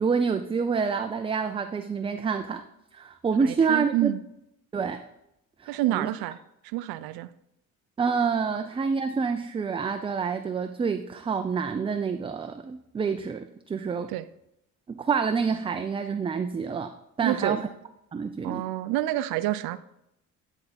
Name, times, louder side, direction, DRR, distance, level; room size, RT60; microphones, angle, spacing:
voice 1, 0.0-2.6 2.9-4.1 4.7-5.0 5.6-6.1 8.0-14.1 14.9-17.7 18.1-18.7, right 5 dB, 15° right, 7 dB, 0.3 m, -27 dB
voice 2, 3.4-4.2 5.7-6.4 6.6-7.3 14.1-14.3 17.2-17.6 18.4-19.8, right 15 dB, 75° right, 14 dB, 0.5 m, -28 dB
9.8 x 3.6 x 4.2 m, 0.81 s
supercardioid pair, 75°, 37 cm